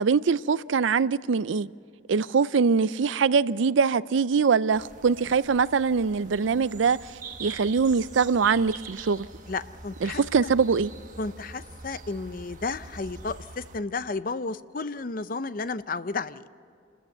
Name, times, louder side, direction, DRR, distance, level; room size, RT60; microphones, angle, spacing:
voice 1, 0.0-1.7 2.1-7.1 7.4-9.3 10.0-10.9, right 5 dB, 85° right, 0.5 m, -23 dB
sound 1, 4.7-13.8, right 3 dB, 45° right, 1.4 m, -44 dB
voice 2, 9.5-10.2 11.2-16.5, left 3 dB, 45° left, 0.6 m, -32 dB
28.0 x 14.0 x 8.0 m
head